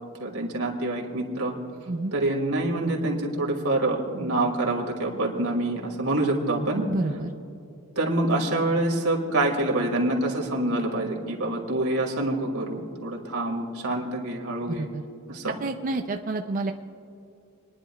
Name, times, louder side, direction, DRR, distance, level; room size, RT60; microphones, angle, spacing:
voice 1, 0.2-1.5 2.1-6.8 8.0-14.9 15.3-15.5, right 2 dB, 85° right, 0 dB, 2.3 m, -26 dB
voice 2, 6.9-7.3 14.7-15.0 15.6-16.7, right 2 dB, 40° right, 4 dB, 0.5 m, -29 dB
29.0 x 10.5 x 2.3 m, 2.6 s
head